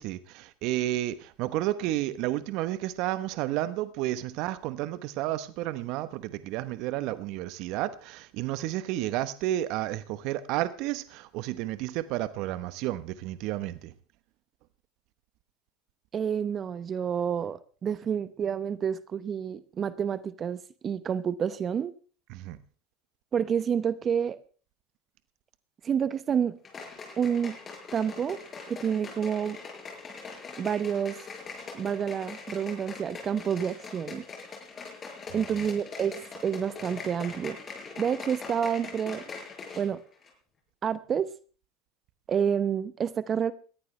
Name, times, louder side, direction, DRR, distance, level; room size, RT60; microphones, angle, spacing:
voice 1, 0.0-13.9 22.3-22.6 35.3-35.4, right 14 dB, 60° right, 1.0 m, -31 dB
voice 2, 16.1-21.9 23.3-24.4 25.8-26.5 27.2-27.5 27.9-28.4 28.7-29.6 30.6-31.2 31.7-34.2 35.3-37.6 38.0-39.2 39.8-40.0 40.8-41.3 42.3-43.5, right 7 dB, 35° right, 0.9 m, -29 dB
sound 1, 26.6-39.9 40.2-40.3, left 4 dB, 30° left, 6.7 m, -42 dB
20.5 x 14.5 x 3.3 m
hypercardioid pair, 90°, 0 cm